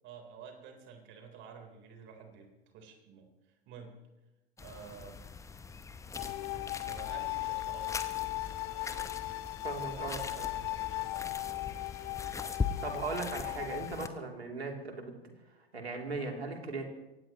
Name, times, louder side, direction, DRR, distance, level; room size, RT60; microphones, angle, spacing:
voice 1, 0.0-2.5 2.7-3.3 3.7-4.0 4.6-5.2 6.5-8.0 9.8-11.3, right 6 dB, 35° right, 4 dB, 3.9 m, -50 dB
sound 1, 4.6-14.1, left 5 dB, 10° left, 0.9 m, -41 dB
sound 2, 6.2-14.1, left 21 dB, 40° left, 0.6 m, -38 dB
voice 2, 9.6-10.2 12.8-15.1 15.7-16.8, right 3 dB, 80° right, 2 dB, 3.2 m, -38 dB
24.0 x 18.5 x 3.1 m, 1.0 s
figure-of-eight pair, 95°, 31 cm